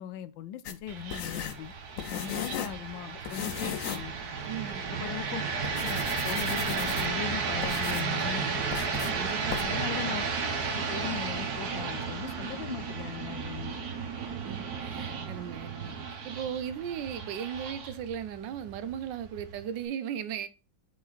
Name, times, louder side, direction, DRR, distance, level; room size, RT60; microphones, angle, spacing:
voice 1, 0.0-4.1 4.9-8.6 9.6-10.3 10.7-13.8, left 10 dB, 85° left, 1.3 m, -39 dB
sound 1, 0.6-2.8 3.2-4.1 4.4-4.5 5.2-5.3 5.6-7.2 7.6-8.2 8.7-9.1 9.5-9.6, left 8 dB, 65° left, 0.8 m, -36 dB
sound 2, 0.9-19.8, right 5 dB, 60° right, 1.6 m, -33 dB
voice 2, 4.5-5.2 9.1-9.6 14.4-15.9 16.2-20.5, right 9 dB, 75° right, 1.3 m, -37 dB
5.4 x 4.9 x 4.0 m
omnidirectional pair, 2.0 m